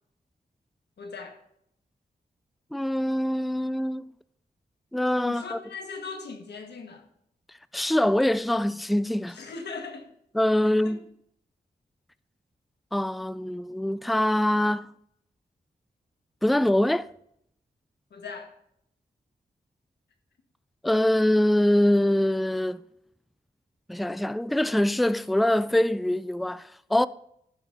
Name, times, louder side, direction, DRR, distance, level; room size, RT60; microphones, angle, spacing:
voice 1, 1.0-1.4 5.2-7.1 9.3-10.1 10.6-11.0 18.1-18.5, left 4 dB, 85° left, 1.6 m, -39 dB
voice 2, 2.7-4.1 4.9-5.6 7.7-9.4 10.3-11.0 12.9-14.9 16.4-17.1 20.8-22.8 23.9-27.1, left 1 dB, ahead, 0.3 m, -24 dB
14.0 x 5.5 x 4.1 m
cardioid pair, 65°, 17 cm